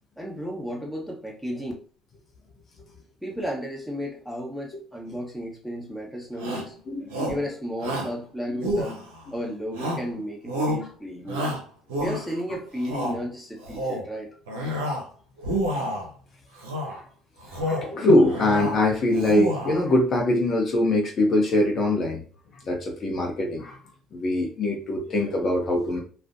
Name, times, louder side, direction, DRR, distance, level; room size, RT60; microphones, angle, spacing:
voice 1, 0.2-1.7 3.2-6.7 7.3-8.9 9.3-11.5 12.0-14.3, equal, 5° left, -1 dB, 1.0 m, -33 dB
Shout, 6.4-6.7 7.1-7.5 7.8-8.2 8.6-9.3 9.7-10.1 10.5-10.8 11.3-12.4 12.8-13.2 13.6-14.1 14.5-15.1 15.4-16.1 16.6-17.0 17.4-17.9 18.2-18.8 19.1-19.8, equal, 85° right, 0.5 m, -29 dB
voice 2, 6.9-7.3 11.3-11.4 16.8-17.0 17.5-22.2 22.6-23.8 24.1-26.0, left 1 dB, 50° left, 1 dB, 0.7 m, -23 dB
2.5 x 2.1 x 2.5 m, 0.41 s
hypercardioid pair, 55°, 0 cm